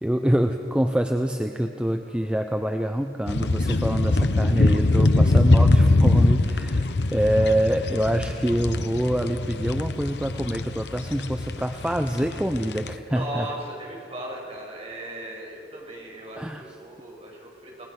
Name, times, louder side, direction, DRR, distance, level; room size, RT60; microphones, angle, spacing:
voice 1, 0.0-13.5 16.4-16.6, equal, 5° right, 5 dB, 0.7 m, -25 dB
sound 1, 3.3-12.9, left 2 dB, 65° left, 0.9 m, -22 dB
voice 2, 13.1-17.8, right 1 dB, 35° right, -2 dB, 6.0 m, -37 dB
30.0 x 19.0 x 5.9 m, 2.6 s
head